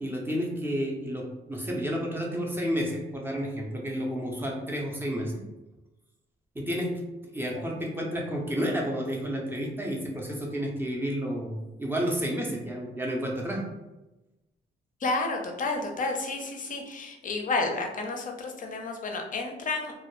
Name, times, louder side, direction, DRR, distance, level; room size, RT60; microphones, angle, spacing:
voice 1, 0.0-5.3 6.5-7.0 7.3-13.6, equal, 10° right, -1 dB, 0.5 m, -31 dB
voice 2, 15.0-19.9, left 3 dB, 40° left, 3 dB, 0.5 m, -31 dB
2.2 x 2.0 x 2.9 m, 1.0 s
cardioid pair, 90°, 20 cm